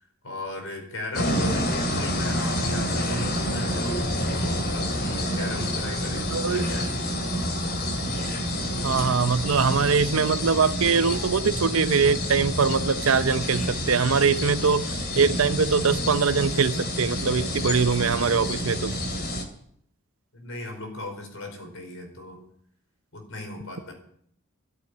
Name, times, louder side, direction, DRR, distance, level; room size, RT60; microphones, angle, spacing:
voice 1, 0.2-6.9 20.3-22.4 23.1-23.9, left 2 dB, 80° left, 4.6 m, -37 dB
sound 1, 1.1-19.4, left 1 dB, 50° left, 2.4 m, -28 dB
voice 2, 6.3-6.7 8.8-18.9, right 5 dB, 90° right, 0.7 m, -23 dB
14.0 x 8.4 x 8.4 m
head